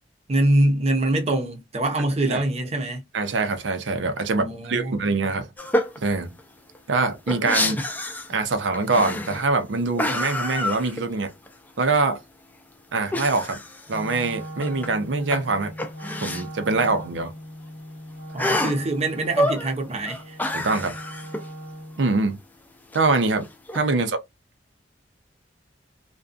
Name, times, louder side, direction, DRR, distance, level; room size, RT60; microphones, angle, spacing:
voice 1, 0.3-3.0 4.4-5.0 18.3-20.4, right 1 dB, 35° right, 0.6 m, -24 dB
voice 2, 3.1-5.5 6.0-6.3 6.9-7.8 8.3-11.3 11.8-12.2 12.9-13.6 13.9-15.7 16.2-17.3 20.5-21.0 22.0-22.4 22.9-23.5 23.7-24.2, right 3 dB, 85° right, 0.5 m, -24 dB
sound 1, 5.6-6.0 6.4-6.5 6.7-8.4 8.7-9.5 10.0-11.5 11.8-11.9 13.1-14.9 15.2-16.5 16.8-16.9 17.2-17.3 18.4-18.8 19.3-19.7 20.1-21.5 22.9-23.8, left 1 dB, 10° left, 0.4 m, -28 dB
Wind instrument woodwind instrument, 13.9-22.1, equal, 85° left, 0.7 m, -39 dB
2.5 x 2.2 x 2.4 m
head